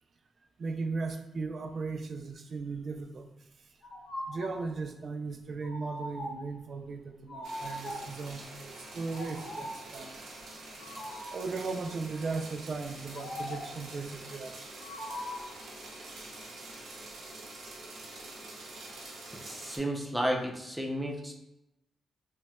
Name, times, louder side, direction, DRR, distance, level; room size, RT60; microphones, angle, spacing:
voice 1, 0.6-3.3 4.3-10.1 11.3-14.8, right 4 dB, 55° right, 7 dB, 0.3 m, -37 dB
sound 1, 3.8-4.7 5.6-6.5 7.3-8.2 9.1-9.9 10.8-11.5 13.1-13.9 14.8-15.6, left 1 dB, 55° left, 0.6 m, -41 dB
sound 2, 7.4-19.8, right 2 dB, 85° right, 0.7 m, -46 dB
voice 2, 19.3-21.3, equal, 5° right, 1 dB, 0.5 m, -32 dB
4.0 x 2.1 x 2.3 m, 0.89 s
cardioid pair, 70°, 0 cm